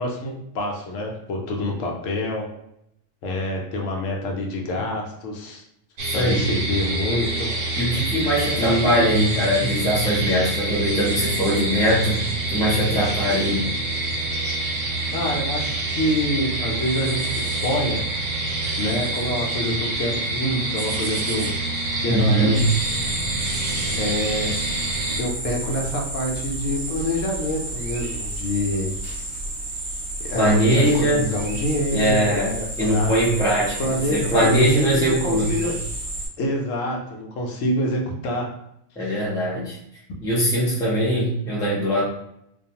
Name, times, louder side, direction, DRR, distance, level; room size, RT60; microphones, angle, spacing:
voice 1, 0.0-2.5 3.2-5.6 6.1-8.1 8.6-9.0 15.1-18.0 18.8-21.5 22.0-22.7 23.9-24.5 25.2-28.9 30.2-33.1 33.8-35.8 36.4-38.5 39.0-39.2, left 1 dB, 75° left, 0 dB, 0.9 m, -26 dB
voice 2, 6.0-6.5 7.7-12.2 12.5-13.6 22.1-22.7 30.3-31.2 31.9-32.5 32.8-35.7 39.0-39.8 40.2-42.0, equal, 5° left, -6 dB, 0.4 m, -21 dB
sound 1, 6.0-25.2, right 2 dB, 75° right, 0.9 m, -26 dB
sound 2, 22.5-36.3, right 2 dB, 40° right, 1.0 m, -31 dB
2.4 x 2.3 x 2.7 m, 0.78 s
omnidirectional pair, 1.4 m